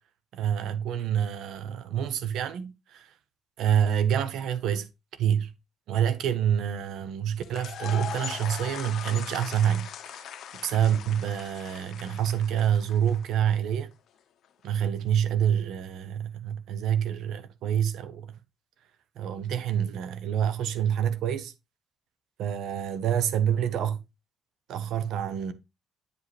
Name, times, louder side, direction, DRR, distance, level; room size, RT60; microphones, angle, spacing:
voice 1, 0.3-3.1 3.6-4.9 5.2-5.5 5.9-10.3 10.6-13.9 14.6-18.3 19.2-21.5 22.4-24.0 24.7-25.5, right 9 dB, 80° right, 0.9 m, -27 dB
sound 1, 7.4-13.4, left 9 dB, 70° left, 0.8 m, -40 dB
9.3 x 5.2 x 3.2 m
cardioid pair, 90°, 0 cm